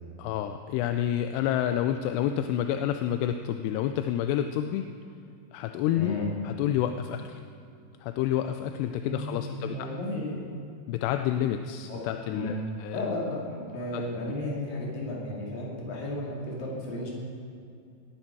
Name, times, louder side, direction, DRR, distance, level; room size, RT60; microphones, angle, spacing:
voice 1, 0.2-4.8 5.5-6.1 6.4-7.4 8.0-9.9 10.9-12.5 12.8-13.0 13.9-14.0, left 11 dB, 85° left, 7 dB, 2.7 m, -29 dB
voice 2, 5.9-6.3 9.0-10.4 11.9-12.0 12.3-12.6 12.9-17.1, left 1 dB, 60° left, -3 dB, 4.3 m, -33 dB
19.0 x 11.5 x 4.7 m, 2.5 s
omnidirectional pair, 4.8 m